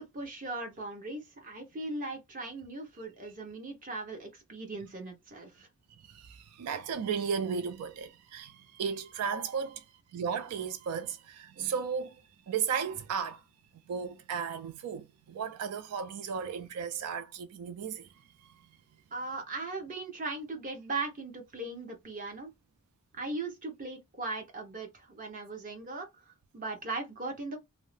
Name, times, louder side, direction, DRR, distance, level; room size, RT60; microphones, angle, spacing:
voice 1, 0.1-5.7 19.1-22.5 23.1-27.6, right 3 dB, 40° right, 0.8 m, -38 dB
voice 2, 6.0-9.9 10.1-13.4 13.9-18.7, right 6 dB, 90° right, 0.3 m, -35 dB
2.7 x 2.0 x 3.1 m
head